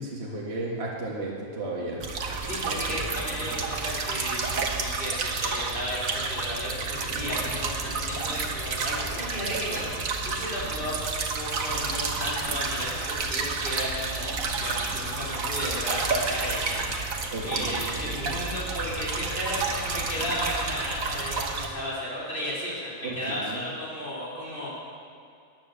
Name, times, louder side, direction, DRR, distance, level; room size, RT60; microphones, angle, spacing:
voice 1, 0.0-2.0 2.7-3.0 17.3-17.8 23.0-23.6, right 2 dB, 50° right, -4 dB, 2.0 m, -34 dB
sound 1, 2.0-21.7, right 4 dB, 75° right, 1.6 m, -30 dB
voice 2, 2.5-16.9 17.4-24.7, equal, 40° left, -7 dB, 4.1 m, -34 dB
14.5 x 9.7 x 6.8 m, 2.4 s
omnidirectional pair, 1.4 m